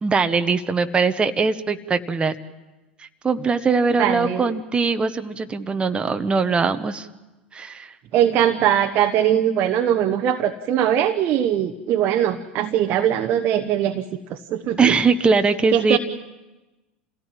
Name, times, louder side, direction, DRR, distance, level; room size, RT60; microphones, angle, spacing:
voice 1, 0.0-2.3 3.0-7.1 7.5-7.9 14.8-16.0, right 4 dB, 20° right, 8 dB, 1.1 m, -21 dB
voice 2, 4.0-4.4 8.1-14.0 14.3-14.9 15.7-16.0, right 10 dB, 40° right, 6 dB, 1.1 m, -21 dB
27.5 x 17.0 x 7.6 m, 1.1 s
figure-of-eight pair, 85°, 5 cm